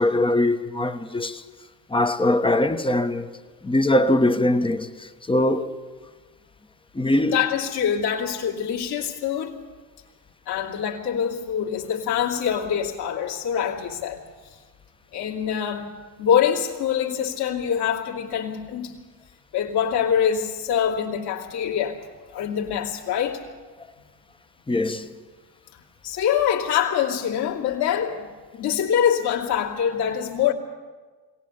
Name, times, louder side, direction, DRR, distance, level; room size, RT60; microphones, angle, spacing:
voice 1, 0.0-1.4 1.9-3.3 3.6-5.8 6.9-7.4 24.7-25.1, left 1 dB, 10° left, 1.2 m, -22 dB
voice 2, 7.3-9.6 10.5-14.2 15.1-15.9 16.2-19.0 19.5-22.1 22.3-23.4 26.0-30.5, left 8 dB, 50° left, 2.8 m, -24 dB
22.5 x 18.0 x 7.0 m
hypercardioid pair, 80°, 49 cm